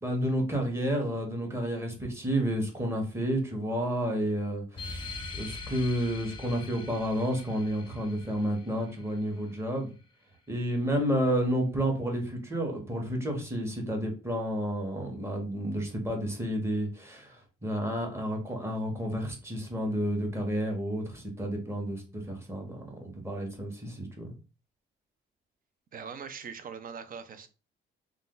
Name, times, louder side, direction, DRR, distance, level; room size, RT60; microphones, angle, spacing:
voice 1, 0.0-5.0 5.4-9.9 10.5-24.3, equal, 15° right, 1.1 m, -31 dB
sound 1, 4.7-9.8, left 3 dB, 25° left, 0.6 m, -43 dB
voice 2, 25.9-27.5, right 6 dB, 45° right, 0.5 m, -41 dB
2.5 x 2.3 x 3.7 m
cardioid pair, 90°, 20 cm